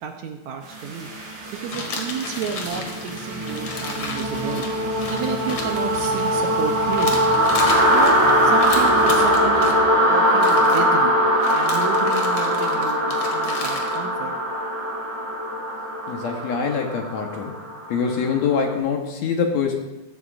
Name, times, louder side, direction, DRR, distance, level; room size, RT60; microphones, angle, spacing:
voice 1, 0.0-1.1 1.5-4.7 5.1-7.2 7.9-11.2 11.5-14.4, right 7 dB, 75° right, 5 dB, 1.9 m, -31 dB
sound 1, 0.8-18.5, equal, 35° right, 3.4 m, -21 dB
sound 2, 1.7-6.6 6.9-9.8 10.3-10.9 11.4-14.0, left 3 dB, 45° left, 1.8 m, -33 dB
voice 2, 16.1-17.5 17.9-19.7, left 6 dB, 65° left, 2 dB, 2.2 m, -24 dB
15.0 x 12.0 x 2.5 m, 0.94 s
omnidirectional pair, 3.7 m